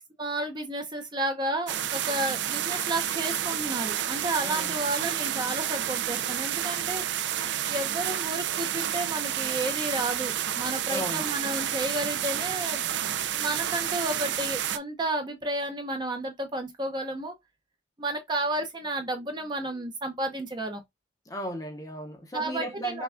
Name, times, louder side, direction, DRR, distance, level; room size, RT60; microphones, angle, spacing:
voice 1, 0.2-7.0 7.7-12.8 13.3-17.3 18.0-20.8 22.3-23.0, right 1 dB, 25° right, 0.6 m, -32 dB
sound 1, 1.7-14.8, right 10 dB, 60° right, 0.4 m, -30 dB
voice 2, 4.4-4.8 10.9-11.3 21.3-23.0, equal, 20° left, 0.7 m, -35 dB
5.5 x 2.3 x 2.5 m
head